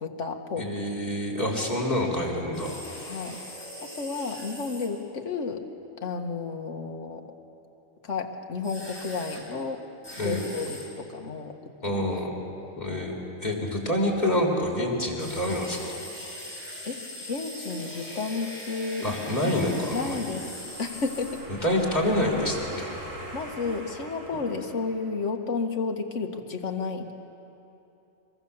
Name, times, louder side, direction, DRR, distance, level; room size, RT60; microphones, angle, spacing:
voice 1, 0.0-0.7 3.1-5.7 6.0-7.3 8.0-9.8 10.2-11.6 11.9-12.0 16.4-16.6 16.8-19.2 19.9-20.5 20.8-21.4 23.3-27.1, left 4 dB, 70° left, 4 dB, 1.8 m, -32 dB
voice 2, 0.6-2.8 10.2-10.4 11.8-12.3 12.8-15.9 19.0-20.3 21.6-22.9, left 1 dB, 35° left, -2 dB, 3.9 m, -27 dB
sound 1, 2.5-4.9 8.6-9.4 10.0-10.9 15.2-21.5, left 1 dB, 10° left, 6.0 m, -41 dB
sound 2, 20.6-25.2, right 1 dB, 75° right, 3.2 m, -41 dB
25.0 x 22.0 x 7.1 m, 2.9 s
omnidirectional pair, 1.3 m